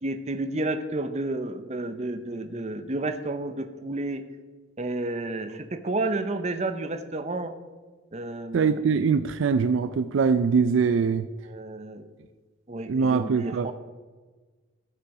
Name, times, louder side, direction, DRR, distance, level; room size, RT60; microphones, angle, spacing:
voice 1, 0.0-4.2 4.8-7.5 8.1-8.8 11.5-12.1 12.7-13.7, right 2 dB, 35° right, 9 dB, 0.7 m, -31 dB
voice 2, 8.5-11.3 12.9-13.7, right 5 dB, 65° right, 11 dB, 0.4 m, -23 dB
15.5 x 5.6 x 4.8 m, 1.4 s
head